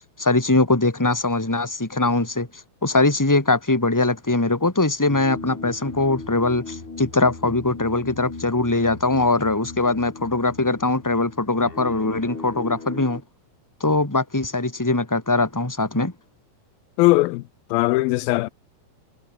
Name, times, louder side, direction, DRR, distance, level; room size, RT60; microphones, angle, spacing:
voice 1, 0.2-2.5 2.8-13.2 13.8-16.1, left 2 dB, 5° left, 2.8 m, -21 dB
sound 1, 5.1-13.2, left 3 dB, 55° left, 9.5 m, -37 dB
voice 2, 17.0-17.4 17.7-18.5, left 20 dB, 90° left, 2.5 m, -19 dB
omnidirectional pair, 4.2 m